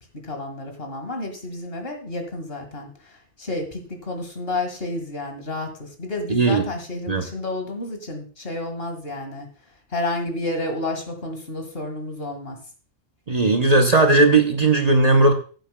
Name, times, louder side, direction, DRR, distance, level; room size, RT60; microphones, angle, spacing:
voice 1, 0.1-9.5 9.9-12.6, left 2 dB, 55° left, 4 dB, 2.1 m, -30 dB
voice 2, 6.3-6.6 7.1-7.3 13.3-15.3, right 2 dB, 35° right, 4 dB, 0.9 m, -17 dB
15.0 x 7.9 x 2.2 m, 0.39 s
omnidirectional pair, 1.2 m